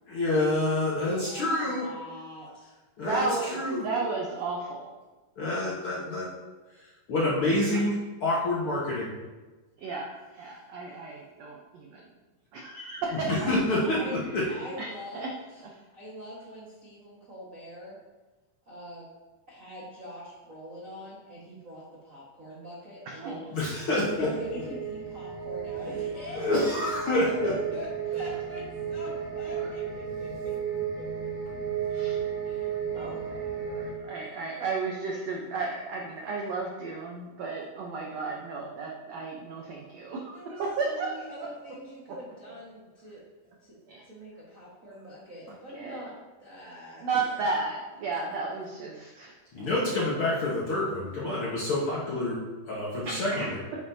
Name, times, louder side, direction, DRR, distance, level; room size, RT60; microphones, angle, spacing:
voice 1, 0.1-1.8 3.0-3.9 5.4-6.3 6.7-7.9 8.2-9.1 13.1-14.4 23.5-24.3 26.3-27.5 49.5-52.4 52.6-53.6, left 2 dB, 55° left, -6 dB, 1.5 m, -27 dB
voice 2, 1.0-2.7 13.8-14.2 14.5-15.4 15.9-18.0 18.6-19.0 19.5-23.6 23.9-26.7 27.4-30.3 31.9-32.2 32.4-33.6 34.5-34.7 40.3-43.2 43.6-43.8 44.0-46.1 46.4-47.4, equal, 60° right, -6 dB, 0.8 m, -43 dB
voice 3, 3.0-4.9 7.7-7.8 9.8-12.0 12.5-13.6 14.4-14.9 15.1-15.3 23.1-23.4 26.5-26.6 31.9-32.2 33.0-41.1 41.4-41.5 43.9-44.0 45.5-46.1 47.0-49.7 53.0-53.5, right 4 dB, 85° right, -1 dB, 1.4 m, -34 dB
sound 1, 23.8-33.9, right 7 dB, 5° left, 1.6 m, -34 dB
9.4 x 7.7 x 2.7 m, 1.2 s
omnidirectional pair, 4.1 m